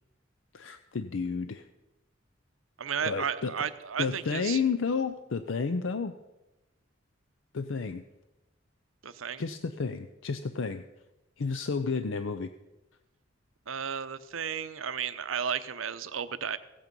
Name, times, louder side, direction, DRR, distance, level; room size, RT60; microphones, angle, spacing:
voice 1, 0.5-1.7 3.0-3.5 4.0-6.1 7.5-8.0 9.4-10.8 11.4-12.5, left 5 dB, 70° left, 10 dB, 0.5 m, -31 dB
voice 2, 2.8-4.6 9.0-9.4 13.7-16.6, right 7 dB, 90° right, 13 dB, 0.7 m, -33 dB
16.0 x 8.7 x 5.3 m, 1.0 s
head